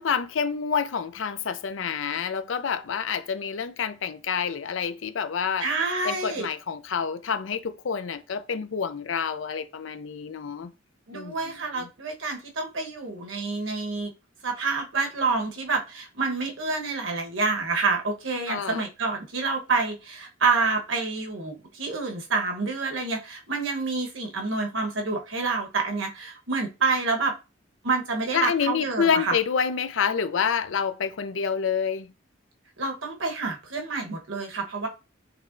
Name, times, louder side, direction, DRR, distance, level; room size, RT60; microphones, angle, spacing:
voice 1, 0.0-5.7 6.0-10.7 11.1-11.9 18.5-18.8 28.3-32.1, left 6 dB, 75° left, 0.5 m, -28 dB
voice 2, 5.6-6.5 11.1-14.1 14.4-27.3 27.8-29.3 32.8-34.9, right 4 dB, 90° right, 1.1 m, -28 dB
6.6 x 3.1 x 2.5 m
head